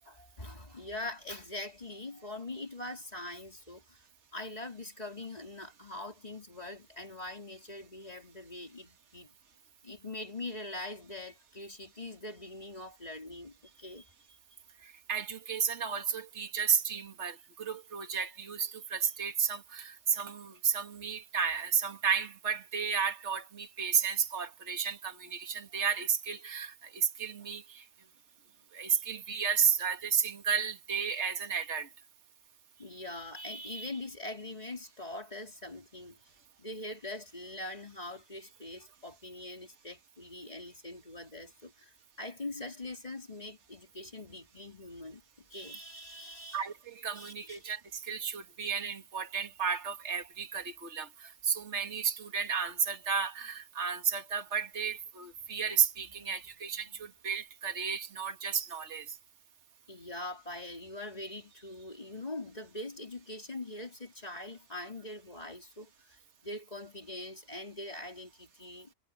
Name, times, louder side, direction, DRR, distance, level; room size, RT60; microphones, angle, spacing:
voice 1, 0.1-4.0 4.3-9.3 9.8-14.1 28.9-29.0 32.8-36.2 36.6-46.6 47.1-47.6 56.0-56.4 56.8-57.0 59.9-68.9, left 2 dB, 25° left, 4.0 m, -43 dB
voice 2, 14.8-27.8 28.7-31.9 46.5-59.2, right 7 dB, 45° right, 2.4 m, -32 dB
omnidirectional pair, 1.7 m